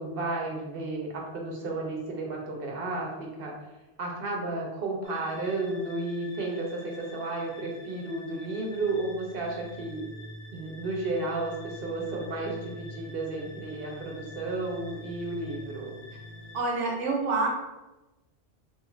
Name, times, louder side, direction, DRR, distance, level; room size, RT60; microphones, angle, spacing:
voice 1, 0.0-3.5 4.0-10.1 10.5-15.9, right 2 dB, 55° right, 0 dB, 0.8 m, -33 dB
sound 1, 5.0-16.6, left 1 dB, 60° left, 0.7 m, -46 dB
voice 2, 16.5-17.5, right 3 dB, 90° right, 0 dB, 1.1 m, -27 dB
3.0 x 2.4 x 3.1 m, 1.0 s
omnidirectional pair, 1.2 m